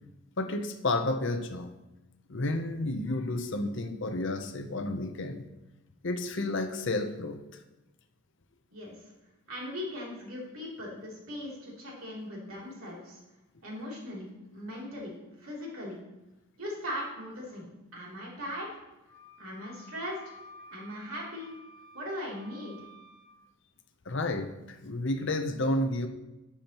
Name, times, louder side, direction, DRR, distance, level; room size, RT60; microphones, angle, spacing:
voice 1, 0.4-1.8 2.3-5.4 6.0-7.4 24.1-26.1, left 2 dB, 55° left, 7 dB, 0.7 m, -31 dB
voice 2, 8.7-9.1 9.5-13.2 13.6-16.0 16.6-18.7 19.4-20.4 20.7-21.5 21.9-22.8, equal, 70° right, -4 dB, 3.0 m, -39 dB
Wind instrument woodwind instrument, 19.1-23.3, left 2 dB, 90° left, 1.6 m, -52 dB
12.0 x 7.1 x 3.0 m, 1.0 s
head